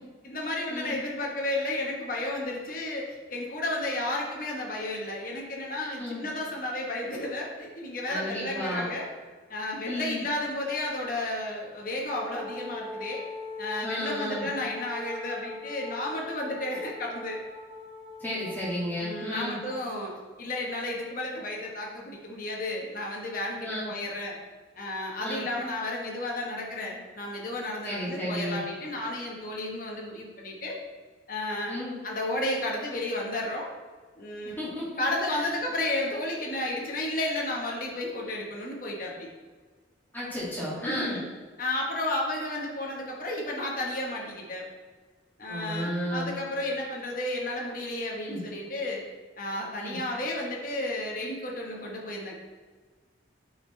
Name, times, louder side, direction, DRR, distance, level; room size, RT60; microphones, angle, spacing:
voice 1, 0.2-9.1 9.5-13.2 13.6-17.4 19.0-20.1 20.4-24.3 24.8-30.8 31.3-31.8 32.0-33.7 34.2-34.6 35.0-39.3 40.8-41.3 41.6-44.6 45.4-49.0 49.4-52.3, left 1 dB, 45° left, -2 dB, 1.2 m, -32 dB
voice 2, 8.1-8.9 9.8-10.2 13.8-14.5 18.2-19.6 23.6-23.9 25.2-25.4 27.8-28.6 31.7-31.9 34.6-35.0 35.3-35.5 40.1-41.2 45.5-46.3 48.1-48.4 49.7-50.0, equal, 10° left, -9 dB, 2.2 m, -33 dB
Wind instrument woodwind instrument, 12.1-20.1, left 3 dB, 30° right, 1.2 m, -41 dB
8.7 x 5.1 x 3.3 m, 1.5 s
head